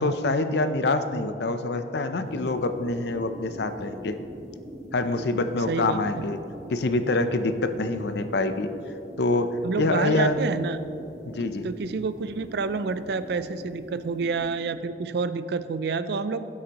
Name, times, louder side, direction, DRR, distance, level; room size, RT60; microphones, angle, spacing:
voice 1, 0.0-4.2 4.9-6.4 6.7-8.7 9.2-10.4 11.3-11.7, left 2 dB, 65° left, 9 dB, 0.6 m, -26 dB
sound 1, 2.2-14.7, equal, 40° right, 1.6 m, -43 dB
voice 2, 5.7-6.3 9.6-10.8 11.6-16.4, right 4 dB, 65° right, 12 dB, 0.4 m, -28 dB
15.5 x 8.1 x 3.0 m, 2.7 s
head